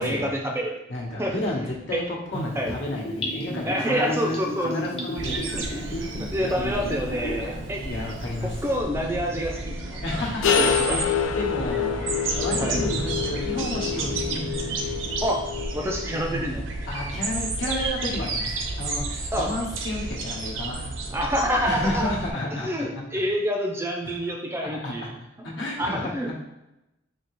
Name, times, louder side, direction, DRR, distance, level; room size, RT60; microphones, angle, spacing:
voice 1, 0.0-0.8 1.2-1.4 1.9-2.0 2.6-2.7 3.6-4.7 5.5-7.8 8.4-10.0 10.6-11.0 12.6-12.8 15.2-15.4 15.7-16.6 19.3-19.5 21.1-22.1 22.5-25.1 25.4-25.5 25.8-26.4, equal, 15° right, 1 dB, 0.4 m, -27 dB
voice 2, 0.9-5.9 6.4-8.6 10.0-12.1 12.4-14.4 16.1-16.5 16.9-20.9 21.6-22.9 24.0-24.2 24.6-25.1 25.4-26.1, left 1 dB, 70° left, -3 dB, 1.0 m, -32 dB
Gurgling / Bathtub (filling or washing), 2.3-7.5 7.8-7.9, equal, 30° left, 0.7 m, -33 dB
sound 1, 5.2-22.3, right 2 dB, 80° right, 0.6 m, -31 dB
sound 2, 10.4-16.2, left 7 dB, 90° left, 0.3 m, -27 dB
4.4 x 2.8 x 3.0 m, 0.92 s
head